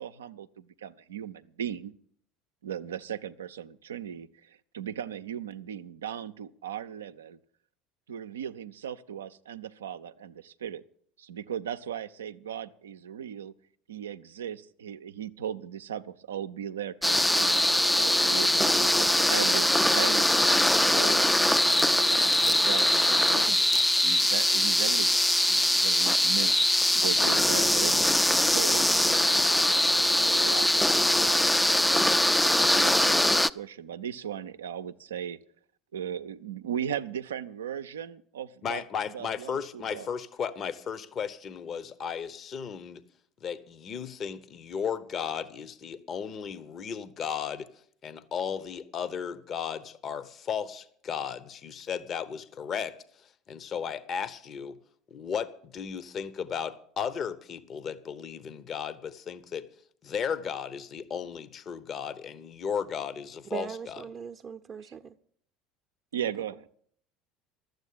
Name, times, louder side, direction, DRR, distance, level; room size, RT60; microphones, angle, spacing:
voice 1, 0.0-1.9 2.6-7.4 8.1-10.8 11.2-13.5 13.9-17.6 17.9-23.7 24.0-26.5 26.9-28.1 28.4-29.9 30.4-32.2 32.6-35.4 35.9-38.8 39.1-40.1 64.8-64.9 66.1-66.7, right 9 dB, 85° right, 0.5 m, -38 dB
sound 1, 17.0-33.5, left 1 dB, 5° left, 0.4 m, -22 dB
voice 2, 38.6-43.0 43.4-47.7 48.0-53.0 53.2-54.8 55.1-59.7 60.0-64.0, left 7 dB, 45° left, 0.8 m, -35 dB
voice 3, 63.5-65.1 66.2-66.3, right 7 dB, 35° right, 0.6 m, -39 dB
12.0 x 8.1 x 8.4 m
hypercardioid pair, 70°, 0 cm